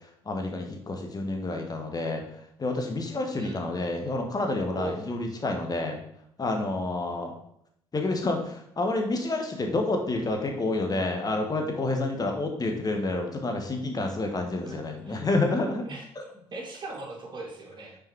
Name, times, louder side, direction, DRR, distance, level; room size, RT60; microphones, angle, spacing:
voice 1, 0.2-2.2 2.6-6.0 6.4-7.3 7.9-15.8 16.1-16.2, left 2 dB, 35° left, 3 dB, 1.8 m, -29 dB
voice 2, 14.6-15.2 15.8-16.1 16.3-18.0, right 2 dB, 40° right, -1 dB, 2.7 m, -39 dB
6.4 x 4.6 x 4.7 m, 0.70 s
hypercardioid pair, 55°, 12 cm